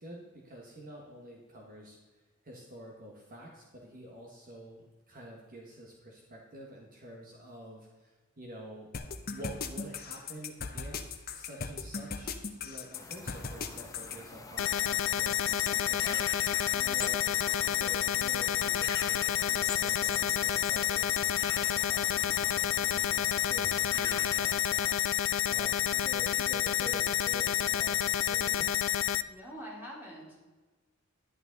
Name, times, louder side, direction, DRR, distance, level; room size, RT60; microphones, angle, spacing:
voice 1, 0.0-8.9 9.3-16.5 16.7-17.3 17.7-28.7, equal, 45° right, -1 dB, 1.6 m, -48 dB
sound 1, 8.9-14.2, left 5 dB, 45° left, 0.9 m, -38 dB
sound 2, 12.9-24.6, left 3 dB, 15° left, 1.0 m, -45 dB
sound 3, 14.6-29.2, left 11 dB, 65° left, 0.4 m, -29 dB
voice 2, 29.3-30.4, equal, 10° right, -4 dB, 3.5 m, -44 dB
11.0 x 10.5 x 4.0 m, 1.3 s
head